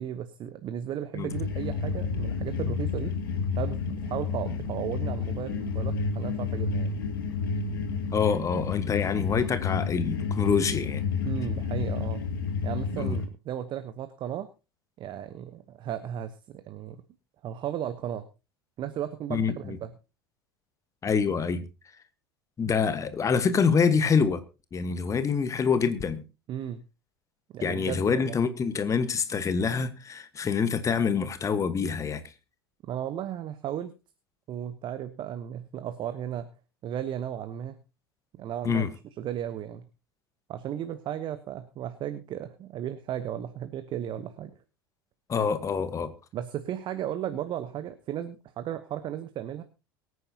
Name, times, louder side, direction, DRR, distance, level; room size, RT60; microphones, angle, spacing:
voice 1, 0.0-3.2 3.6-7.0 11.2-12.2 12.6-14.5 15.0-17.0 17.4-18.3 18.8-19.9 26.5-26.8 27.5-28.4 32.8-33.9 34.5-36.5 36.8-37.8 38.4-38.8 39.2-39.9 40.5-44.5 46.3-49.6, right 10 dB, 40° right, 1.0 m, -35 dB
sound 1, 1.3-13.3, left 5 dB, 70° left, 2.0 m, -30 dB
voice 2, 8.1-11.0 12.9-13.2 19.3-19.8 21.0-21.7 22.6-24.4 24.7-26.2 27.6-32.2 38.6-38.9 45.3-46.1, left 6 dB, 25° left, 1.4 m, -26 dB
23.0 x 9.5 x 2.9 m
figure-of-eight pair, 75°, 12 cm